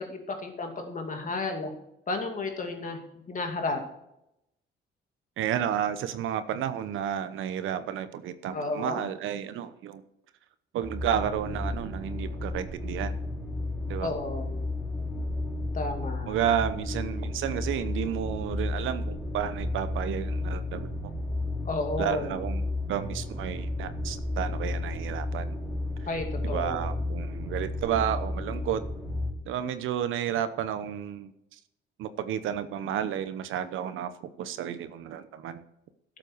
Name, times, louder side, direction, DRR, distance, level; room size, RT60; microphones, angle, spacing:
voice 1, 0.0-1.7 2.1-3.0 3.3-3.8 8.5-9.1 14.0-14.6 15.7-16.4 21.6-22.4 26.0-26.9, left 3 dB, 40° left, 4 dB, 2.5 m, -32 dB
voice 2, 5.4-10.0 10.7-13.2 13.9-14.1 16.3-20.9 22.0-25.6 26.4-28.8 29.4-31.3 32.0-34.1 34.4-35.6, right 9 dB, 85° right, 12 dB, 0.9 m, -31 dB
sound 1, 10.8-29.3, left 2 dB, 5° left, 2.7 m, -33 dB
12.0 x 7.6 x 4.6 m, 0.83 s
cardioid pair, 90°, 20 cm